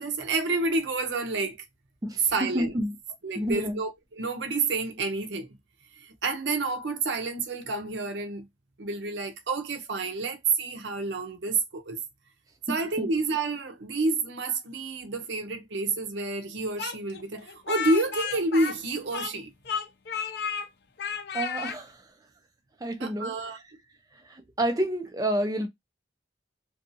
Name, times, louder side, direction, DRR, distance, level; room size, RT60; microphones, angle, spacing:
voice 1, 0.0-1.6 2.3-2.7 3.2-5.5 6.0-8.5 8.8-12.0 12.7-19.5 23.0-23.6, right 3 dB, 85° right, 0.6 m, -29 dB
voice 2, 2.0-2.9 3.4-3.8 12.7-13.1 21.3-22.0 22.8-23.3 24.3-25.7, right 1 dB, 20° right, 0.4 m, -29 dB
Speech, 16.8-19.4 19.7-20.7 21.0-21.8, left 7 dB, 65° left, 0.4 m, -32 dB
2.6 x 2.3 x 2.6 m
head